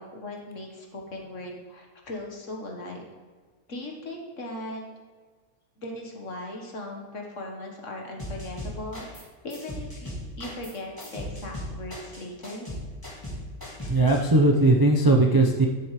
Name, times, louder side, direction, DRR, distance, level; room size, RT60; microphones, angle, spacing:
voice 1, 0.0-3.0 3.7-4.8 5.8-10.1 10.4-12.7, left 1 dB, 55° left, 1 dB, 1.7 m, -38 dB
sound 1, 8.2-9.2 9.5-14.2, left 1 dB, 15° left, 2.5 m, -37 dB
voice 2, 13.8-15.7, right 2 dB, 25° right, 1 dB, 0.4 m, -19 dB
11.5 x 7.4 x 3.2 m, 1.5 s
omnidirectional pair, 1.5 m